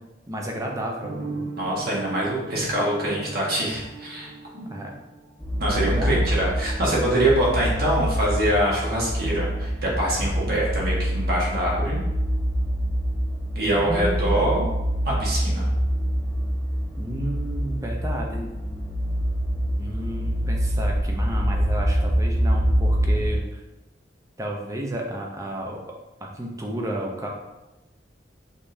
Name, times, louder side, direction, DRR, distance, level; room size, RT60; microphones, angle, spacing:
voice 1, 0.3-1.4 4.7-4.9 5.7-6.2 13.8-14.4 17.0-18.5 19.8-23.6 24.4-25.8 26.2-27.3, right 1 dB, 20° right, 0 dB, 0.6 m, -32 dB
sound 1, 1.0-5.8, right 3 dB, 90° right, 0.6 m, -37 dB
voice 2, 1.6-4.3 4.5-4.7 5.6-12.0 13.5-14.6 15.0-15.7, right 1 dB, 55° right, -5 dB, 1.3 m, -24 dB
sound 2, 5.4-23.4, equal, 10° left, 0.9 m, -25 dB
5.2 x 3.3 x 2.6 m, 1.0 s
head